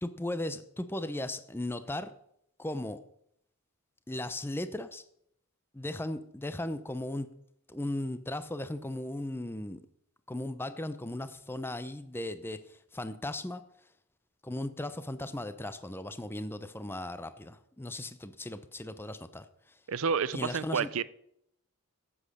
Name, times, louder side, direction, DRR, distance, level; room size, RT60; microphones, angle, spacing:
voice 1, 0.0-2.1 2.6-3.0 4.1-5.0 5.7-7.3 7.7-9.8 10.3-13.6 14.4-19.8 20.3-20.9, left 1 dB, 10° left, 12 dB, 0.6 m, -37 dB
voice 2, 19.9-21.0, right 6 dB, 65° right, 17 dB, 0.5 m, -29 dB
12.5 x 8.6 x 6.6 m, 0.74 s
head